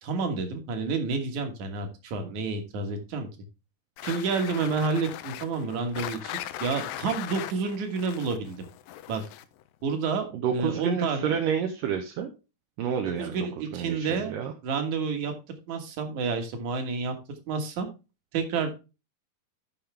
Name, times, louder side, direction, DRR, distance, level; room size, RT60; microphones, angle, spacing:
voice 1, 0.0-3.3 4.0-8.7 9.1-9.2 9.8-11.3 13.2-14.4 14.6-15.3 15.7-17.2 17.5-17.9 18.3-18.7, right 4 dB, 55° right, 5 dB, 2.6 m, -29 dB
sound 1, 4.0-9.6, left 13 dB, 85° left, 2.0 m, -39 dB
voice 2, 10.3-12.3 12.8-13.5 13.7-14.5, right 8 dB, 70° right, 4 dB, 2.2 m, -29 dB
13.0 x 5.6 x 3.4 m, 0.29 s
omnidirectional pair, 4.6 m